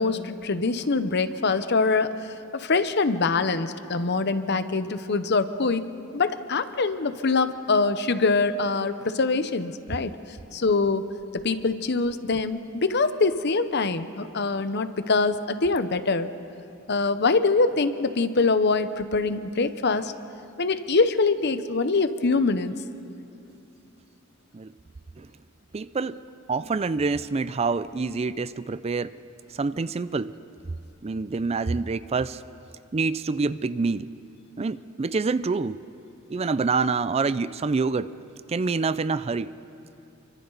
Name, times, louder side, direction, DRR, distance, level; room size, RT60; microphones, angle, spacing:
voice 1, 0.0-10.1 10.5-11.1 11.3-16.3 16.9-20.1 20.6-22.7, left 3 dB, 55° left, 11 dB, 0.9 m, -24 dB
voice 2, 25.7-26.2 26.5-29.1 29.5-30.4 31.0-32.4 32.9-34.1 34.6-35.8 36.3-38.1 38.5-39.5, right 4 dB, 30° right, 15 dB, 0.4 m, -26 dB
29.5 x 24.0 x 4.0 m, 2.6 s
head